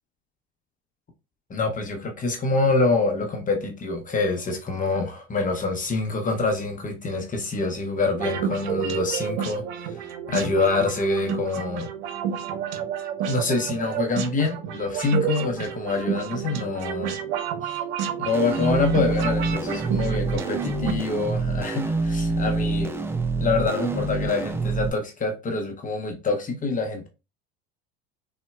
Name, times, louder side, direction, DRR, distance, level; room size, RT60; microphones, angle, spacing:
voice 1, 1.5-10.0 10.3-11.9 13.3-17.2 17.6-17.8 18.2-22.9 23.4-27.1, left 3 dB, 25° left, 0.7 m, -26 dB
sound 1, 8.1-20.9, right 8 dB, 65° right, 0.6 m, -30 dB
sound 2, 18.3-24.9, right 3 dB, 10° right, 0.3 m, -26 dB
3.9 x 2.1 x 2.2 m
hypercardioid pair, 80°, 31 cm